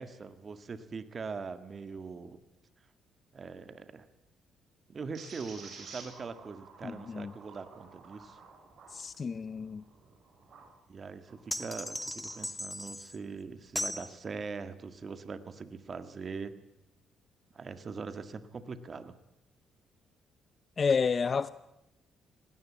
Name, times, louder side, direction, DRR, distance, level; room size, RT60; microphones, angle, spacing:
voice 1, 0.0-2.4 3.3-4.1 4.9-8.4 10.9-16.5 17.5-19.2, right 5 dB, 40° right, 1.8 m, -42 dB
sound 1, 5.1-10.7 11.2-12.4, right 4 dB, 55° right, 7.7 m, -52 dB
voice 2, 6.8-7.3 8.9-9.8 20.8-21.5, left 5 dB, 40° left, 0.7 m, -30 dB
sound 2, 11.5-13.2 13.8-14.1, left 1 dB, 5° left, 1.6 m, -37 dB
19.5 x 17.0 x 8.6 m
cardioid pair, 90°, 0 cm